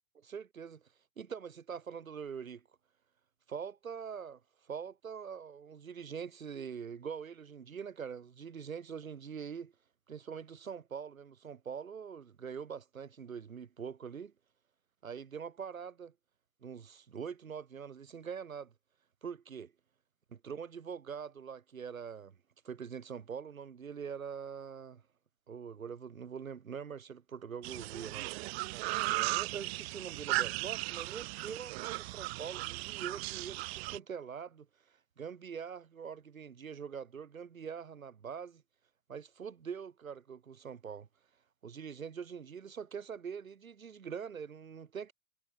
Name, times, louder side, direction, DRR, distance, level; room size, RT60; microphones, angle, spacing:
voice 1, 0.1-0.8 1.2-2.6 3.5-4.4 4.7-9.7 10.1-14.3 15.0-16.1 16.6-18.7 19.2-19.7 20.3-22.3 22.6-25.0 25.5-28.3 29.0-34.7 35.2-38.6 39.1-41.1 41.6-45.1, right 7 dB, 90° right, 1.0 m, -43 dB
sound 1, 27.6-34.0, right 22 dB, 50° right, 0.6 m, -36 dB
figure-of-eight pair, 90°, 40 cm